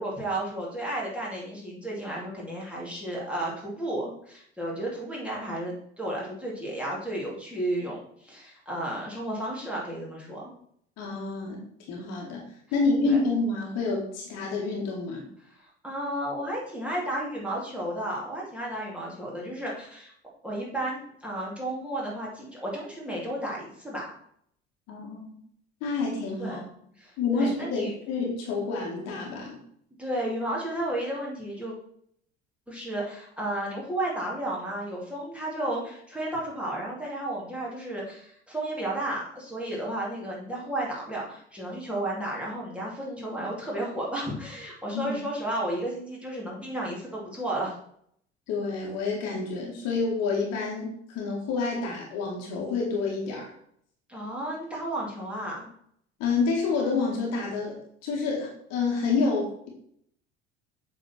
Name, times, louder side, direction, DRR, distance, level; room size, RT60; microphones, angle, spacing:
voice 1, 0.0-10.5 13.0-13.2 15.6-20.1 20.4-24.1 26.4-26.6 27.0-27.9 30.0-31.7 32.7-47.8 54.1-55.7, right 1 dB, 5° right, -5 dB, 2.7 m, -33 dB
voice 2, 11.0-11.6 11.9-12.5 12.7-15.3 24.9-25.4 25.8-26.6 27.2-29.6 44.9-45.1 48.5-53.5 56.2-57.8 58.0-59.7, left 4 dB, 50° left, -1 dB, 2.0 m, -28 dB
8.0 x 4.2 x 4.4 m, 0.67 s
figure-of-eight pair, 65°, 32 cm